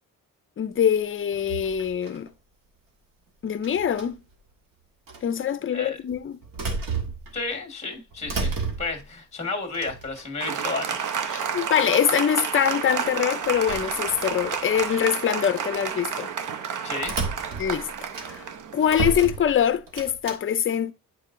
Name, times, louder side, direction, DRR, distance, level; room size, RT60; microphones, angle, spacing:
voice 1, 0.6-2.3 3.4-4.2 5.2-6.4 11.3-16.3 17.6-18.5 18.7-20.9, left 9 dB, 40° left, 0.6 m, -24 dB
sound 1, 1.3-2.3 3.6-4.3 5.1-5.2 6.1-7.6 7.9-9.1 9.7-10.5 11.1-11.2 11.4-11.8 13.4-14.9 15.5-15.7 17.0-18.5 18.9-20.4, right 4 dB, 85° right, 1.7 m, -33 dB
voice 2, 7.3-11.1 16.8-17.1, left 3 dB, 20° left, 1.6 m, -32 dB
Applause, 10.4-19.4, right 7 dB, 70° right, 0.8 m, -31 dB
9.2 x 4.5 x 2.6 m
wide cardioid pair, 155°, 33 cm